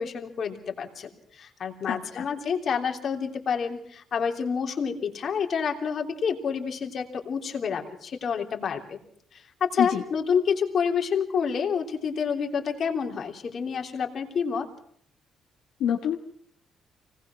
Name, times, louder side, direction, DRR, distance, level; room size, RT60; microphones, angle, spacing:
voice 1, 0.0-9.0 9.3-14.7, left 6 dB, 55° left, 3 dB, 3.2 m, -28 dB
voice 2, 1.9-2.3 9.8-10.0 15.8-16.2, left 9 dB, 85° left, 1 dB, 1.7 m, -26 dB
25.0 x 19.0 x 6.0 m, 0.63 s
cardioid pair, 90°, 0 cm